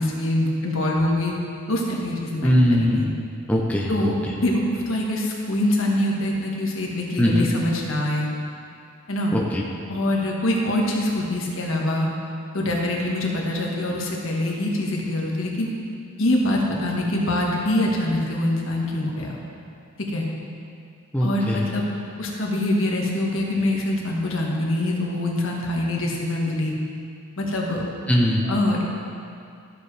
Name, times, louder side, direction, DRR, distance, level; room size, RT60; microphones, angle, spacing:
voice 1, 0.0-1.3 1.7-3.1 3.9-4.1 4.4-8.3 9.1-9.3 9.9-12.1 12.5-15.7 16.2-19.4 20.1-20.2 21.2-21.8 22.2-26.7 27.4-27.8 28.5-28.8, left 1 dB, 70° left, -2 dB, 1.5 m, -24 dB
voice 2, 2.4-3.1 3.5-3.9 7.2-7.5 9.3-9.6 21.1-21.7 28.1-28.5, equal, 5° left, -2 dB, 0.6 m, -20 dB
13.0 x 7.1 x 3.3 m, 2.4 s
head